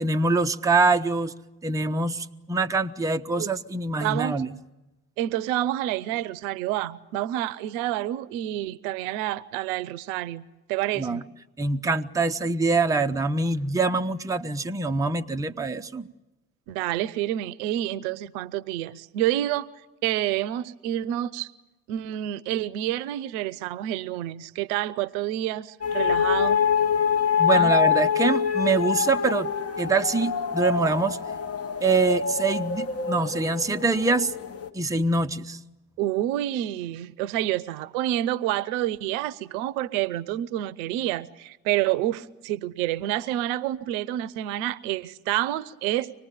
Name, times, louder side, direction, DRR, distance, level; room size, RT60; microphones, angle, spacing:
voice 1, 0.0-1.3 1.6-4.5 11.0-11.2 11.6-16.1 27.4-29.5 29.8-31.2 31.8-34.3 34.7-35.6, right 3 dB, 5° right, 0.7 m, -24 dB
voice 2, 4.0-4.4 5.2-11.2 16.7-19.7 20.0-21.5 21.9-26.6 27.5-27.7 36.0-46.2, right 13 dB, 65° right, 0.8 m, -28 dB
sound 1, 25.8-34.7, left 7 dB, 30° left, 1.6 m, -25 dB
25.0 x 19.0 x 8.9 m
figure-of-eight pair, 55°, 45 cm